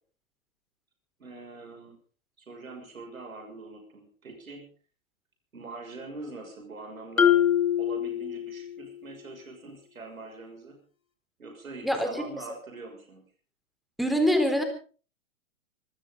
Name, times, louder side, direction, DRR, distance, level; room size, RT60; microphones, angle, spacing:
voice 1, 1.2-2.0 2.4-4.7 5.5-7.4 7.8-10.8 11.4-13.2, right 3 dB, 85° right, 4 dB, 6.5 m, -43 dB
Marimba xylophone, 7.2-8.9, left 9 dB, 90° left, 1.9 m, -24 dB
voice 2, 11.8-12.2 14.0-14.6, equal, ahead, 6 dB, 3.9 m, -24 dB
25.5 x 14.0 x 3.9 m, 0.39 s
hypercardioid pair, 120°, 40 cm